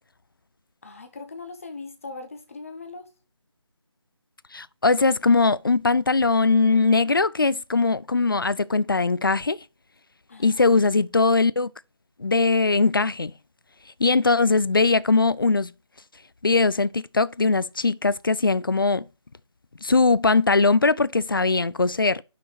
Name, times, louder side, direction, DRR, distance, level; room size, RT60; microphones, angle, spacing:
voice 1, 0.8-3.1 10.3-10.6, left 3 dB, 30° left, 1.0 m, -39 dB
voice 2, 4.5-9.6 10.4-11.7 12.2-13.3 14.0-15.7 16.4-19.1 19.8-22.2, left 3 dB, 45° left, 0.4 m, -20 dB
5.9 x 5.1 x 6.6 m
figure-of-eight pair, 160°, 16 cm